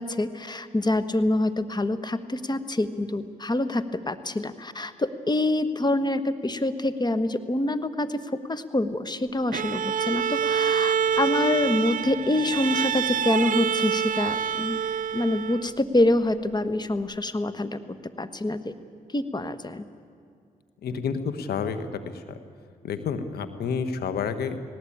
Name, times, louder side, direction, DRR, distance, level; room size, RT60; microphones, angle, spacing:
voice 1, 0.0-14.8 15.1-18.7 19.1-19.9, left 2 dB, 25° left, 12 dB, 1.4 m, -26 dB
Bowed string instrument, 9.5-15.8, right 8 dB, 60° right, 0.5 m, -26 dB
voice 2, 20.8-21.9 22.3-22.4 22.8-24.6, left 6 dB, 80° left, 9 dB, 1.4 m, -29 dB
19.0 x 18.0 x 8.7 m, 2.3 s
supercardioid pair, 55°, 16 cm